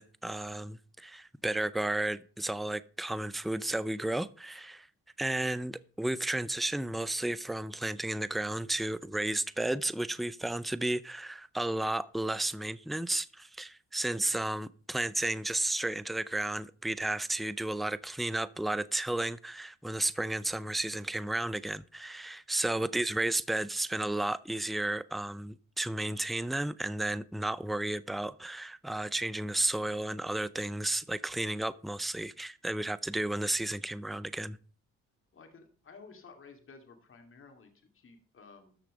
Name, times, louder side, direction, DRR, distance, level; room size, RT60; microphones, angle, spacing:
voice 1, 0.0-4.9 5.2-34.6, right 1 dB, ahead, 0.5 m, -33 dB
voice 2, 35.3-38.8, left 4 dB, 45° left, 2.6 m, -54 dB
13.5 x 6.4 x 5.1 m
cardioid pair, 90°, 30 cm